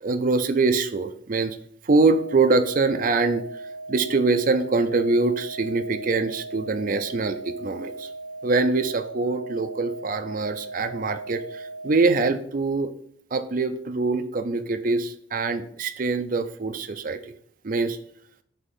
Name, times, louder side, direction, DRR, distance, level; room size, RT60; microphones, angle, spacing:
voice 1, 0.0-1.6 1.9-3.4 3.9-8.1 8.4-12.9 13.3-17.2 17.6-18.0, right 3 dB, 40° right, 10 dB, 0.4 m, -24 dB
sound 1, 2.0-12.0, right 2 dB, 90° right, 0.7 m, -38 dB
5.6 x 3.6 x 5.2 m, 0.65 s
head